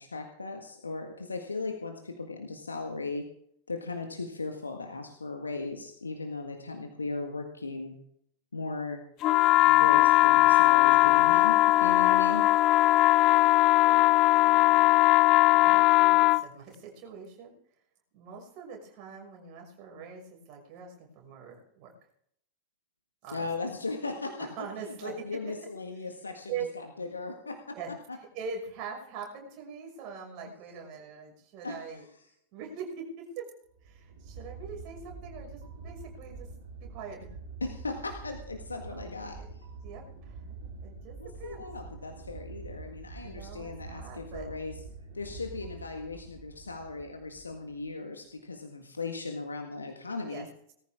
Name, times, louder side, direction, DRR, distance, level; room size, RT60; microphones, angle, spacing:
voice 1, 0.0-3.3 3.7-7.9 8.5-9.0 9.7-12.4 23.3-24.5 24.8-27.8 31.6-31.8 37.6-39.6 41.2-44.8 45.1-50.5, left 3 dB, 75° left, 4 dB, 1.7 m, -37 dB
sound 1, 9.2-16.4, left 18 dB, 35° left, 0.5 m, -20 dB
voice 2, 13.1-15.1 15.5-17.5 18.1-21.9 23.2-23.5 24.4-25.1 26.5-26.6 27.7-27.9 28.3-32.0 32.5-33.5 33.8-36.5 36.8-37.3 38.9-39.5 39.8-41.6 43.2-44.5 50.3-50.4, right 6 dB, 40° right, 1 dB, 6.0 m, -43 dB
sound 2, 33.7-47.9, right 4 dB, 60° right, 3.2 m, -46 dB
19.5 x 14.0 x 3.6 m, 0.69 s
figure-of-eight pair, 90°, 0 cm